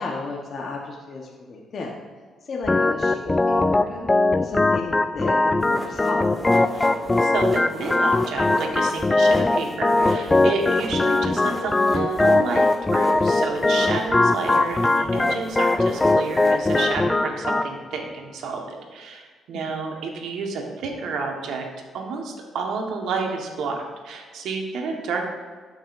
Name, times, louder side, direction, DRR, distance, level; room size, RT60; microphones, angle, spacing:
voice 1, 0.0-2.0 2.4-4.1 4.4-6.3 19.5-19.8, left 3 dB, 50° left, -1 dB, 1.1 m, -33 dB
Organ, 2.7-17.7, left 2 dB, 20° left, 0.3 m, -21 dB
sound 1, 5.6-14.0 14.3-16.9, right 1 dB, 10° right, 2.0 m, -35 dB
voice 2, 7.2-21.7 21.9-25.3, right 4 dB, 80° right, 2 dB, 1.4 m, -30 dB
13.0 x 6.1 x 2.6 m, 1.5 s
cardioid pair, 90°, 0 cm